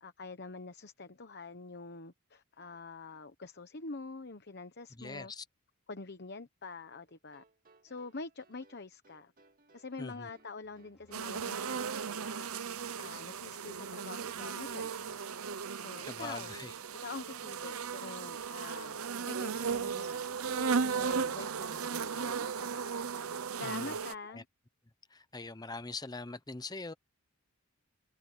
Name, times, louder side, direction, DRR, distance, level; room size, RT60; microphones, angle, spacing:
voice 1, 0.0-5.3 5.9-7.4 7.8-9.3 9.7-12.6 13.0-15.3 15.8-16.6 17.0-20.3 20.5-23.0 23.5-24.5, left 3 dB, 50° left, 1.0 m, -46 dB
voice 2, 5.0-5.4 10.0-10.3 16.1-16.7 23.6-24.0 24.3-24.4 25.1-26.9, left 3 dB, 20° left, 0.9 m, -43 dB
sound 1, 7.1-17.1, right 2 dB, 40° right, 2.1 m, -65 dB
sound 2, 10.6-23.5, equal, ahead, 3.4 m, -71 dB
sound 3, 11.1-24.1, right 6 dB, 75° right, 0.8 m, -36 dB
head